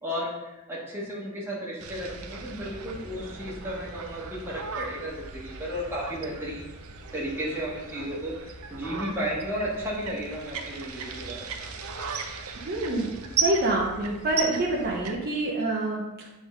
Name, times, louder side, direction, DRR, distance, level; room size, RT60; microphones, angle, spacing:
voice 1, 0.0-6.7 7.1-11.6, equal, 10° right, -6 dB, 1.6 m, -34 dB
sound 1, 1.8-15.1, right 5 dB, 75° right, 0.7 m, -36 dB
voice 2, 12.6-13.1 13.4-16.3, right 2 dB, 45° right, -4 dB, 1.0 m, -27 dB
8.0 x 3.9 x 3.7 m, 0.97 s
head